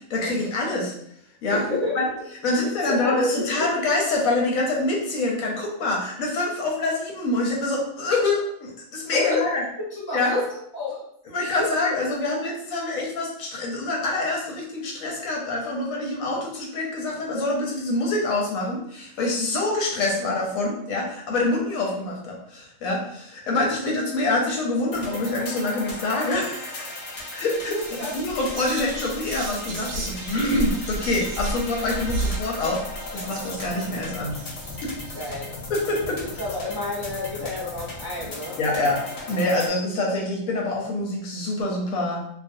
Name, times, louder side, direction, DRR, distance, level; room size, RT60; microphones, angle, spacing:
voice 1, 0.1-0.9 1.4-1.6 2.0-2.1 2.4-9.6 10.1-10.4 11.3-27.0 27.3-34.3 34.8-34.9 35.7-36.2 38.6-39.0 39.3-42.3, left 2 dB, 90° left, -2 dB, 1.1 m, -26 dB
voice 2, 1.5-2.0 2.5-3.7 9.1-9.4 9.9-11.0 11.6-11.7 27.7-28.2 35.1-35.5 36.0-38.6, left 2 dB, 30° left, -6 dB, 0.4 m, -29 dB
sound 1, 24.9-39.7, left 2 dB, 60° left, 0.9 m, -37 dB
Whispering, 27.2-27.3 27.6-35.7, right 1 dB, 70° right, 0.8 m, -34 dB
2.5 x 2.2 x 2.6 m, 0.72 s
omnidirectional pair, 1.4 m